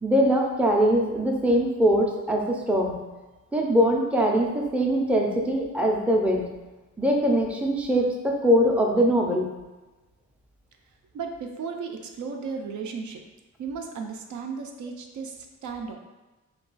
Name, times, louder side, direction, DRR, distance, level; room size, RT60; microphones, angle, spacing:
voice 1, 0.0-3.0 3.5-6.5 7.0-9.5, equal, 5° right, 0 dB, 0.4 m, -22 dB
voice 2, 11.1-13.2 13.6-15.3 15.6-16.0, right 5 dB, 65° right, 3 dB, 0.5 m, -34 dB
2.3 x 2.3 x 3.8 m, 1.1 s
cardioid pair, 65°, 31 cm